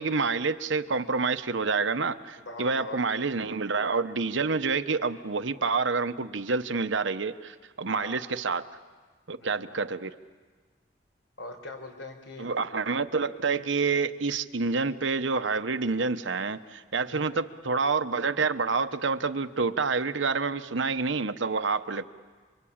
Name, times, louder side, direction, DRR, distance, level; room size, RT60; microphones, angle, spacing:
voice 1, 0.0-8.7 9.3-10.1 12.4-22.0, right 4 dB, 70° right, 11 dB, 1.0 m, -28 dB
voice 2, 2.4-3.0 7.9-8.2 9.4-9.9 11.4-12.5 17.1-17.4, left 2 dB, 80° left, 5 dB, 4.7 m, -42 dB
28.0 x 23.5 x 8.8 m, 1.5 s
head